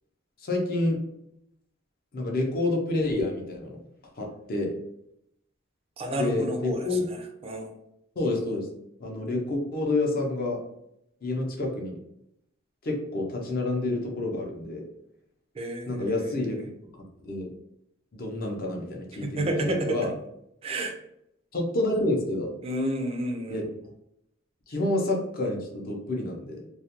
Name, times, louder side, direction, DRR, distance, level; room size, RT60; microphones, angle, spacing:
voice 1, 0.4-1.0 2.1-3.8 4.2-4.8 6.2-7.1 8.2-8.7 9.0-10.6 11.2-12.0 12.8-14.8 15.9-16.7 17.2-17.5 18.1-20.1 21.5-22.5 23.5-23.6 24.7-26.6, left 2 dB, 50° left, 0 dB, 0.5 m, -28 dB
voice 2, 6.0-6.9 7.4-7.7 15.6-16.4 19.2-20.0 20.6-21.0 22.6-23.7, right 1 dB, 30° right, 4 dB, 0.3 m, -30 dB
2.3 x 2.1 x 2.8 m, 0.79 s
head